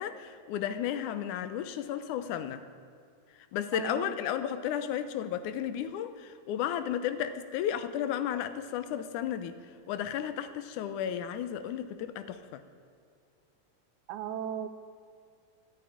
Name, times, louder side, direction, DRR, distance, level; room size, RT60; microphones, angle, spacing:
voice 1, 0.0-2.6 3.5-9.6 9.9-12.6, left 10 dB, 80° left, 12 dB, 2.1 m, -33 dB
voice 2, 3.7-4.1 14.1-14.7, right 9 dB, 80° right, 10 dB, 2.2 m, -36 dB
13.5 x 8.4 x 10.0 m, 2.3 s
omnidirectional pair, 3.6 m